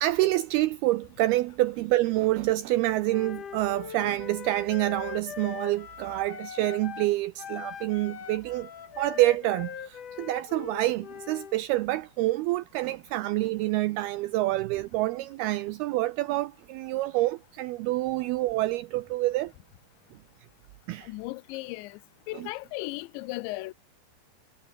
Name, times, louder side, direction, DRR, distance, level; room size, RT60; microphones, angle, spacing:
voice 1, 0.0-8.7 9.0-19.5 20.9-21.1 22.3-22.5, right 17 dB, 90° right, 2.2 m, -27 dB
Wind instrument woodwind instrument, 3.1-7.1 7.4-11.6, left 7 dB, 50° left, 3.8 m, -41 dB
voice 2, 21.0-22.0 22.3-23.7, left 20 dB, 90° left, 3.0 m, -36 dB
omnidirectional pair, 5.2 m